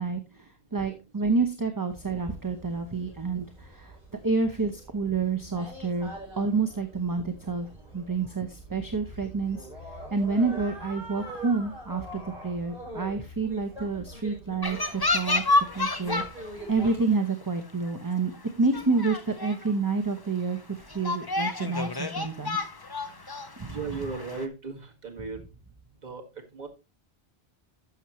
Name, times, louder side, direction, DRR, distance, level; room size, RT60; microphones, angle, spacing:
voice 1, 0.0-4.0 4.2-7.7 7.9-9.6 10.1-15.4 15.7-16.2 16.7-18.3 18.6-22.6 23.6-23.8, right 4 dB, 20° right, 7 dB, 0.8 m, -28 dB
sound 1, 1.9-17.0, right 1 dB, 5° right, 6.9 m, -44 dB
sound 2, 14.6-16.5 16.8-17.2 17.8-17.9 18.3-18.4 18.7-19.7 20.2-20.3 20.9-24.5, left 2 dB, 25° left, 0.8 m, -29 dB
voice 2, 23.7-25.4 26.0-26.2 26.5-26.7, right 4 dB, 40° right, 1 dB, 2.0 m, -36 dB
11.5 x 7.2 x 3.1 m, 0.27 s
omnidirectional pair, 1.1 m